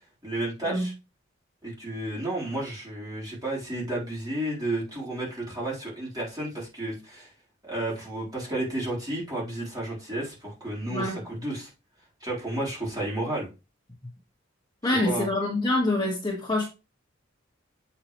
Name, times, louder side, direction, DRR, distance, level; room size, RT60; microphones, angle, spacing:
voice 1, 0.2-0.9 1.6-7.3 7.6-11.7 12.2-13.5 14.8-15.3, right 1 dB, 20° right, 3.9 m, -32 dB
voice 2, 10.9-11.2 14.8-16.6, left 1 dB, 20° left, 1.5 m, -26 dB
7.7 x 5.8 x 3.1 m
head